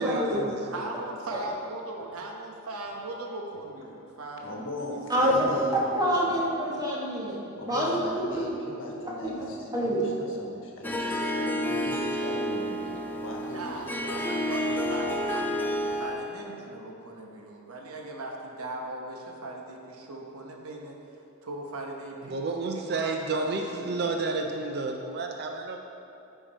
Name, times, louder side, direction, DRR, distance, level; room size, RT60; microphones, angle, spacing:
voice 1, 0.0-0.6 0.9-1.0 22.3-25.8, right 3 dB, 45° right, 3 dB, 0.5 m, -31 dB
voice 2, 0.6-4.7 13.5-21.0 21.4-24.2, right 2 dB, 70° right, 1 dB, 1.0 m, -39 dB
voice 3, 4.0-5.7 7.5-14.4, left 1 dB, 60° left, -1 dB, 1.3 m, -39 dB
voice 4, 5.1-7.4 7.7-7.9 9.2-9.4 9.7-10.0, equal, 15° right, -5 dB, 1.5 m, -26 dB
Harp, 10.8-16.3, equal, 10° left, 0.5 m, -30 dB
10.0 x 4.6 x 4.5 m, 2.8 s
head